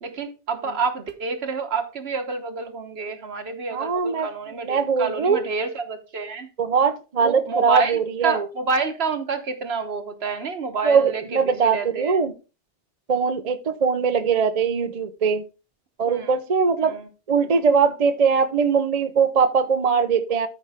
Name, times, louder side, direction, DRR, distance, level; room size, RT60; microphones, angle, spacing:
voice 1, 0.0-6.5 7.2-12.2 16.1-16.4 16.8-17.1, right 4 dB, 65° right, 1.4 m, -28 dB
voice 2, 3.7-4.3 4.6-5.4 6.6-8.5 10.8-12.3 13.1-15.4 16.0-17.0 17.3-20.5, right 5 dB, 40° right, 0.7 m, -21 dB
13.0 x 5.3 x 3.5 m
omnidirectional pair, 1.2 m